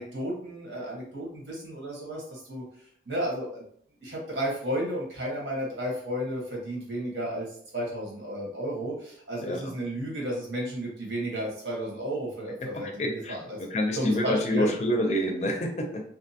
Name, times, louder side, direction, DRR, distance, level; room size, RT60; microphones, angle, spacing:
voice 1, 0.0-2.6 3.1-3.6 4.0-7.5 7.7-13.6 13.9-14.7, equal, 90° right, -3 dB, 1.1 m, -33 dB
voice 2, 12.8-13.4 13.7-16.0, equal, 40° left, 3 dB, 0.4 m, -27 dB
2.7 x 2.2 x 2.7 m, 0.64 s
head